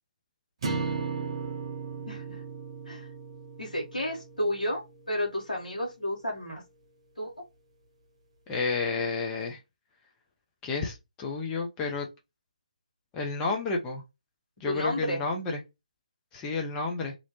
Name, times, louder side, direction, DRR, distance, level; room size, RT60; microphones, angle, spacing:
sound 1, 0.6-5.0, right 4 dB, 40° right, 0.7 m, -36 dB
voice 1, 2.1-2.4 2.9-3.1 3.6-6.6 7.2-7.3 14.6-15.2, left 1 dB, 75° left, 1.0 m, -31 dB
voice 2, 8.5-9.6 10.6-12.1 13.1-14.0 14.6-15.6 16.3-17.1, left 4 dB, 15° left, 0.4 m, -31 dB
2.5 x 2.0 x 2.8 m
figure-of-eight pair, 145°, 4 cm